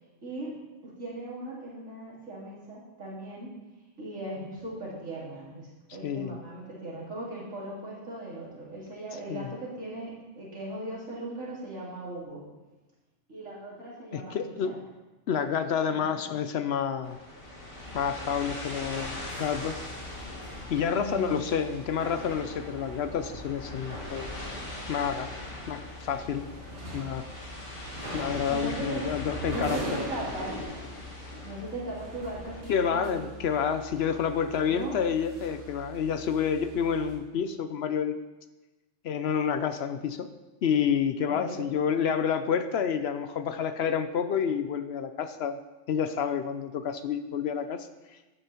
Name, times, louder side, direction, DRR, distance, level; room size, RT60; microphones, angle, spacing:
voice 1, 0.2-0.5 0.8-3.5 4.0-12.4 13.3-14.8 15.9-16.2 20.9-21.4 28.5-29.0 29.5-30.5 31.4-33.3 34.7-35.0 41.3-41.7, right 1 dB, 90° right, -8 dB, 3.6 m, -38 dB
voice 2, 6.0-6.4 9.3-9.5 14.1-14.8 15.3-17.2 17.9-19.7 20.7-24.3 24.9-25.3 25.7-26.5 26.9-27.2 28.1-29.8 32.7-38.2 39.0-40.3 40.6-45.6 45.9-47.9, left 7 dB, 65° left, 10 dB, 0.7 m, -29 dB
sound 1, 17.0-32.6, left 1 dB, 45° left, 1.9 m, -42 dB
sound 2, 17.7-37.2, left 1 dB, 60° right, 2.1 m, -43 dB
12.0 x 8.9 x 2.9 m, 1.1 s
omnidirectional pair, 1.3 m